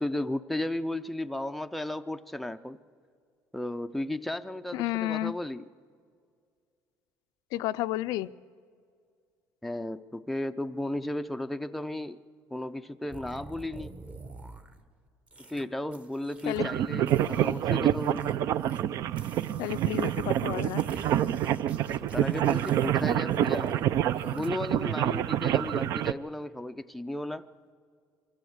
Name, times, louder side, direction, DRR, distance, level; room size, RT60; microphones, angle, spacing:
voice 1, 0.0-2.8 3.5-5.6 9.6-12.2 12.5-13.9 15.5-18.3 21.9-23.9 24.3-27.5, left 1 dB, ahead, 8 dB, 0.4 m, -34 dB
voice 2, 4.7-5.3 7.5-8.3 16.5-16.7 19.6-20.8, left 15 dB, 80° left, 13 dB, 0.4 m, -31 dB
sound 1, 13.1-14.8 15.3-15.7 15.9-16.7 17.1-18.8 19.1-24.5, right 2 dB, 20° right, 0.9 m, -49 dB
sound 2, 16.5-26.1, right 11 dB, 55° right, 0.5 m, -27 dB
23.0 x 15.0 x 7.9 m, 2.2 s
cardioid pair, 160°, 7 cm